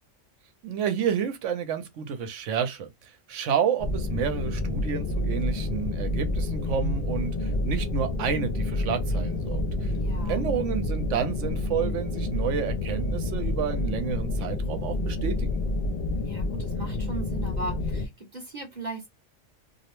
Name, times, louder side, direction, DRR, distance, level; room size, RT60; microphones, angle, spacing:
voice 1, 0.6-9.9 10.3-15.6, right 7 dB, 75° right, 0.9 m, -30 dB
sound 1, 3.8-18.1, left 2 dB, 65° left, 0.5 m, -29 dB
voice 2, 9.9-10.5 16.1-19.1, right 2 dB, 40° right, 0.8 m, -38 dB
2.5 x 2.0 x 2.9 m
omnidirectional pair, 1.3 m